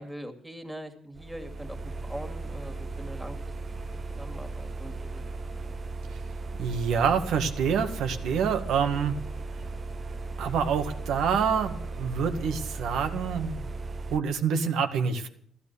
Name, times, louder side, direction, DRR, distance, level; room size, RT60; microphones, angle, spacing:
voice 1, 0.0-3.4 4.2-5.2, right 1 dB, 5° right, 4 dB, 2.6 m, -42 dB
sound 1, 1.1-14.2, right 2 dB, 40° right, 1.2 m, -37 dB
voice 2, 6.6-9.2 10.4-13.7 14.1-15.3, right 6 dB, 80° right, 7 dB, 1.8 m, -27 dB
15.0 x 13.0 x 6.9 m, 0.62 s
cardioid pair, 90°, 0 cm